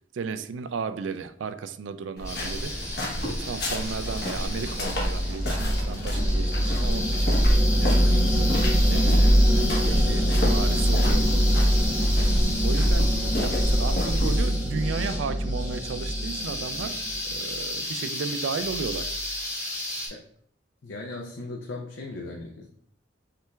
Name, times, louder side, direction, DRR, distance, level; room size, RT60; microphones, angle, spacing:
voice 1, 0.1-8.2 8.9-11.7 12.6-17.0 17.3-19.4, right 5 dB, 85° right, 0.4 m, -34 dB
sound 1, 2.2-14.4, equal, 60° left, 1.1 m, -30 dB
sound 2, 2.2-20.1, left 1 dB, 15° left, 1.3 m, -34 dB
low wind string, 4.0-17.5, equal, 10° right, 0.5 m, -24 dB
voice 2, 20.8-22.7, left 2 dB, 85° left, 0.6 m, -37 dB
5.8 x 3.3 x 2.3 m
head